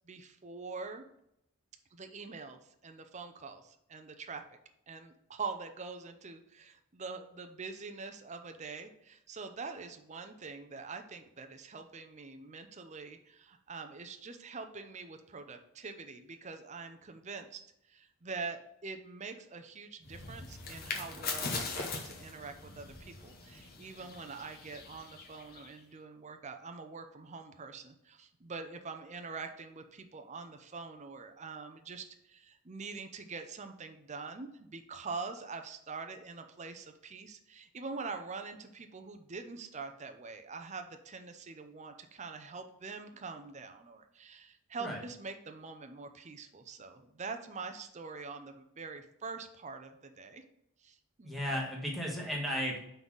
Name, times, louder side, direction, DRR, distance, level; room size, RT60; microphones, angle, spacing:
voice 1, 0.1-1.0 1.9-4.4 4.9-17.6 17.9-50.4 50.8-51.4, right 4 dB, 30° right, 6 dB, 0.6 m, -44 dB
sound 1, 20.0-25.8, left 4 dB, 45° left, 1.0 m, -41 dB
voice 2, 51.2-52.8, equal, ahead, -3 dB, 1.4 m, -34 dB
5.5 x 4.0 x 6.1 m, 0.79 s
head